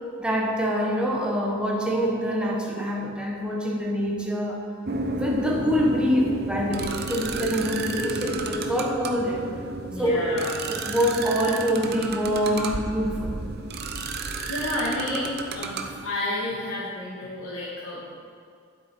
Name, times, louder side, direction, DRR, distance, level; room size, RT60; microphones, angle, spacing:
voice 1, 0.2-4.6 5.0-9.5 10.0-10.4 10.7-13.4, equal, 5° right, -2 dB, 1.4 m, -25 dB
sound 1, 4.9-16.1, right 2 dB, 50° right, 0.7 m, -32 dB
voice 2, 9.7-10.5 14.4-18.1, left 1 dB, 85° left, -8 dB, 2.0 m, -31 dB
12.5 x 7.7 x 4.6 m, 2.2 s
head